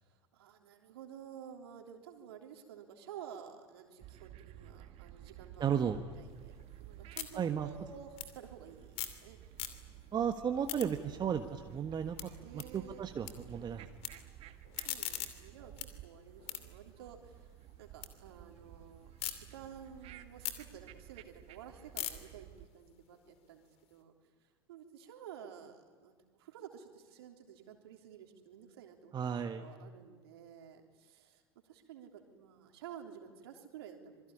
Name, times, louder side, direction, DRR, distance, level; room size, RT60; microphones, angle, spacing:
voice 1, 0.0-9.6 12.4-13.0 14.7-17.5 17.8-24.1 24.4-29.1 29.6-34.3, right 8 dB, 65° right, 3 dB, 3.5 m, -52 dB
sound 1, 4.0-22.7, right 12 dB, 45° right, 1.8 m, -54 dB
voice 2, 5.6-6.0 7.3-7.7 10.1-13.9 29.1-29.6, right 8 dB, 30° right, 7 dB, 1.5 m, -34 dB
sound 2, 6.3-9.2 9.5-10.1 10.4-13.3 13.6-14.1 14.5-18.1 18.5-19.3 19.8-23.9, left 12 dB, 50° left, 2.7 m, -44 dB
26.5 x 22.0 x 9.9 m, 1.5 s
figure-of-eight pair, 70°, 14 cm